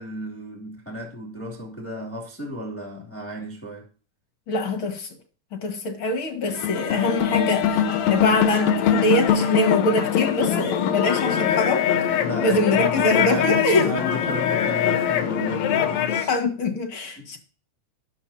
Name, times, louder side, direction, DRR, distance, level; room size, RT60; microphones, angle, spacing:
voice 1, 0.0-3.9 12.1-16.3 17.2-17.4, left 1 dB, 5° left, 2.2 m, -34 dB
voice 2, 4.5-5.1 5.5-12.1 12.4-13.9 16.3-17.4, left 2 dB, 45° left, 2.2 m, -24 dB
sound 1, 6.5-16.3, left 8 dB, 70° left, 2.2 m, -22 dB
13.0 x 11.5 x 2.8 m
omnidirectional pair, 3.6 m